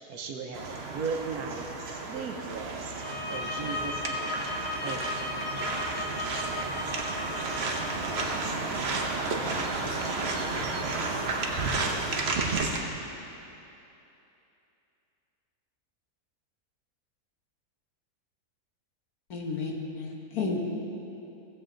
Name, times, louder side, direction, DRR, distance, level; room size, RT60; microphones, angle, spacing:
voice 1, 0.1-3.0 3.3-4.5 4.8-5.4, right 5 dB, 75° right, 2 dB, 1.2 m, -37 dB
sound 1, 0.5-12.8, right 3 dB, 50° right, 1.0 m, -32 dB
sound 2, 2.9-8.3, left 3 dB, 35° left, 0.8 m, -36 dB
voice 2, 8.9-11.1, left 1 dB, 60° left, -4 dB, 2.2 m, -44 dB
voice 3, 19.3-20.6, left 4 dB, 75° left, 0 dB, 1.7 m, -32 dB
16.0 x 7.8 x 3.8 m, 2.9 s
omnidirectional pair, 1.6 m